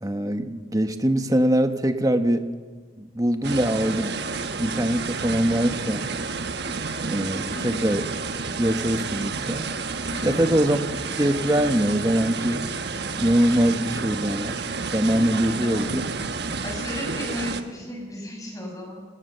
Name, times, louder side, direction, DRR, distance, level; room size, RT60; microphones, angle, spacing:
voice 1, 0.0-2.5 3.0-4.1 4.6-6.1 7.1-8.0 8.5-9.7 10.2-10.8 11.2-12.6 13.2-16.0, right 1 dB, 20° right, 8 dB, 1.2 m, -23 dB
sound 1, 3.4-17.6, right 4 dB, 55° right, 1.2 m, -30 dB
voice 2, 7.5-7.9 10.1-10.3 15.4-15.9 16.6-19.0, left 1 dB, 15° left, 1 dB, 6.3 m, -34 dB
28.0 x 19.5 x 6.9 m, 1.5 s
head